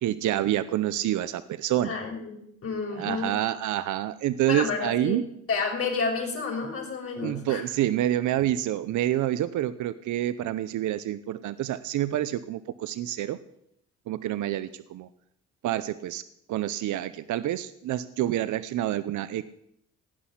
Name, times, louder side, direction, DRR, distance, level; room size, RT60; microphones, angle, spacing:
voice 1, 0.0-2.0 2.9-5.2 7.2-13.4 14.1-15.1 15.6-16.2 16.5-19.4, right 13 dB, 75° right, 14 dB, 0.7 m, -28 dB
voice 2, 1.8-3.3 4.5-5.2 5.5-7.6, left 4 dB, 50° left, 0 dB, 5.7 m, -30 dB
17.5 x 6.2 x 9.9 m, 0.75 s
cardioid pair, 90°, 30 cm